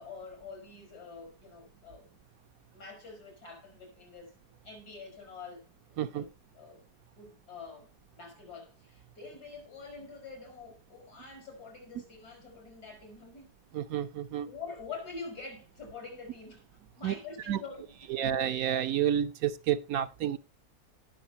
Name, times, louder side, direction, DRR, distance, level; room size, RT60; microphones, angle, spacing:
voice 1, 0.0-2.1 2.7-4.3 4.6-6.3 6.6-6.8 7.2-13.5 14.5-16.6 17.0-18.3, left 4 dB, 85° left, 5.4 m, -46 dB
voice 2, 13.7-14.5 17.0-17.1 17.5-17.6 18.1-20.4, right 10 dB, 70° right, 1.1 m, -30 dB
18.5 x 6.5 x 2.8 m
omnidirectional pair, 1.6 m